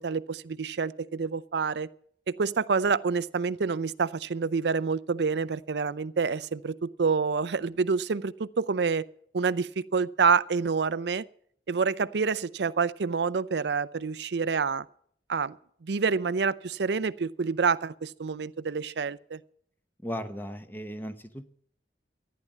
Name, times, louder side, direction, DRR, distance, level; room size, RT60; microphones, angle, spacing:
voice 1, 0.0-1.9 2.3-9.1 9.3-11.2 11.7-14.8 15.3-15.6 15.8-19.4, right 5 dB, 75° right, 0.5 m, -27 dB
voice 2, 20.0-21.5, equal, 10° left, 1.0 m, -37 dB
14.0 x 10.5 x 7.4 m
head